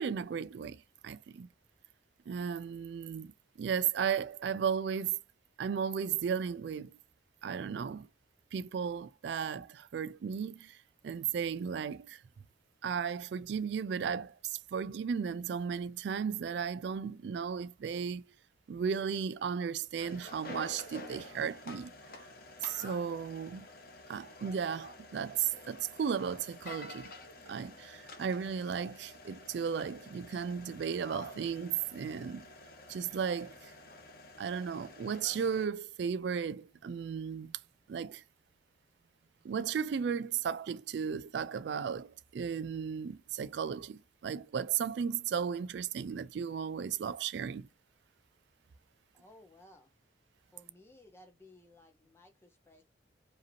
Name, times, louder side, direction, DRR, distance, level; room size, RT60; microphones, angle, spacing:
voice 1, 0.0-1.5 2.3-3.3 3.6-5.2 5.6-7.0 7.4-8.1 8.5-12.2 12.8-18.3 18.7-22.2 22.6-23.7 24.1-27.1 27.5-32.5 32.9-33.7 34.4-37.6 37.9-38.2 39.4-47.7, right 7 dB, 65° right, 0.3 m, -35 dB
sound 1, 20.0-35.7, left 2 dB, 50° left, 1.0 m, -50 dB
voice 2, 49.1-49.9 50.5-52.8, left 1 dB, 15° left, 1.2 m, -58 dB
4.9 x 2.9 x 2.7 m
head